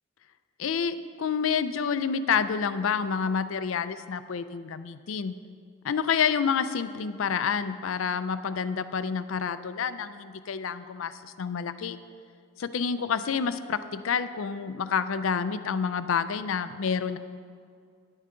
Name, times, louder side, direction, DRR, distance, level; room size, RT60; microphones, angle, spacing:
voice 1, 0.6-5.4 5.8-12.0 12.6-17.2, left 6 dB, 75° left, 12 dB, 0.4 m, -28 dB
10.0 x 10.0 x 3.8 m, 2.2 s
head